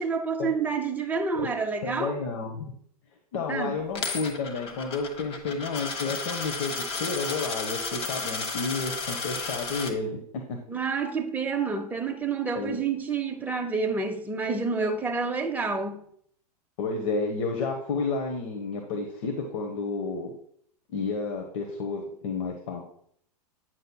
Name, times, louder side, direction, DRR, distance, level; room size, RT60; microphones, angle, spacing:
voice 1, 0.0-2.2 3.5-3.8 10.7-16.0, right 4 dB, 10° right, 0.9 m, -29 dB
voice 2, 1.8-2.7 3.3-10.2 10.5-10.6 12.5-12.8 16.8-20.3 20.9-22.8, left 4 dB, 55° left, 1.1 m, -31 dB
Coin (dropping), 4.0-9.9, left 4 dB, 30° left, 1.2 m, -33 dB
9.2 x 6.6 x 2.3 m
figure-of-eight pair, 100°, 20 cm